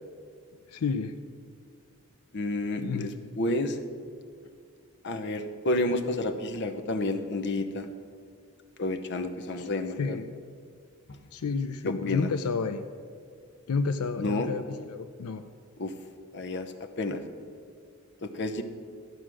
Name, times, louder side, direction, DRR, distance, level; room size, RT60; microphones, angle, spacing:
voice 1, 0.7-1.1 2.8-3.3 9.6-9.7 10.0-10.4 11.3-12.8 13.7-15.4, left 4 dB, 85° left, 9 dB, 0.5 m, -31 dB
voice 2, 2.3-3.8 5.0-7.9 8.8-10.2 11.1-11.2 11.8-12.3 14.2-14.5 15.8-15.9 16.3-17.2 18.2-18.6, left 2 dB, 55° left, 7 dB, 0.8 m, -30 dB
12.5 x 4.9 x 7.6 m, 2.2 s
head